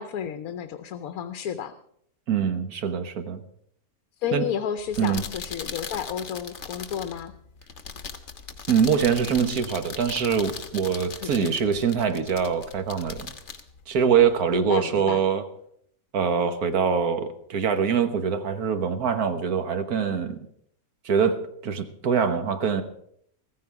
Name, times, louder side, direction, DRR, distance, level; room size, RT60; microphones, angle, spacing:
voice 1, 0.0-1.7 4.2-7.3 11.2-11.6 14.5-15.2, left 8 dB, 75° left, 10 dB, 1.2 m, -32 dB
voice 2, 2.3-3.4 4.3-4.5 5.0-5.2 8.7-13.3 13.9-15.4 16.1-20.4 21.0-22.8, right 7 dB, 80° right, 8 dB, 1.7 m, -24 dB
sound 1, 4.8-14.6, left 5 dB, 55° left, 1.4 m, -39 dB
15.0 x 14.5 x 4.8 m, 0.68 s
omnidirectional pair, 1.5 m